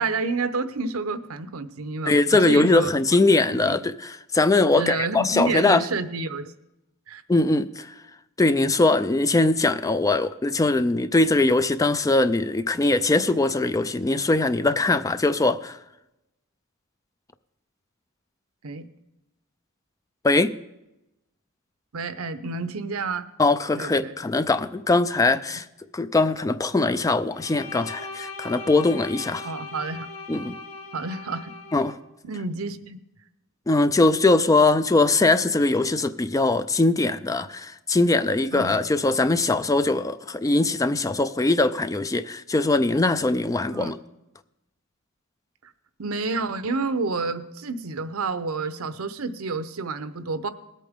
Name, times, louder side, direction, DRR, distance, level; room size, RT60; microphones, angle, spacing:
voice 1, 0.0-2.9 3.7-3.8 4.7-6.5 7.1-7.2 18.6-18.9 21.9-23.3 23.8-24.2 29.4-30.1 30.9-31.5 32.2-33.0 38.5-38.7 43.7-43.9 45.6-45.7 46.0-50.5, right 3 dB, 80° right, 0.7 m, -29 dB
voice 2, 2.1-5.8 7.3-7.9 8.4-15.8 20.2-20.5 23.4-25.7 25.9-29.5 30.3-30.5 31.7-32.0 33.7-44.0, left 2 dB, 15° left, 0.4 m, -21 dB
Bowed string instrument, 27.3-32.0, left 3 dB, 75° left, 1.8 m, -39 dB
20.0 x 8.4 x 3.6 m
head